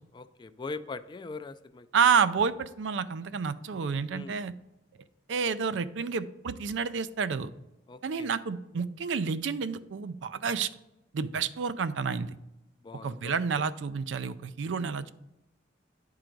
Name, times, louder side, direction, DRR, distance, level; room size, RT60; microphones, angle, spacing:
voice 1, 0.1-1.9 4.1-4.4 7.9-8.3 12.8-13.7, left 3 dB, 25° left, 11 dB, 0.3 m, -41 dB
voice 2, 1.9-4.5 5.3-7.5 8.0-10.7 11.1-12.4 13.0-15.1, right 6 dB, 80° right, 14 dB, 0.4 m, -29 dB
10.5 x 3.8 x 4.5 m, 0.92 s
head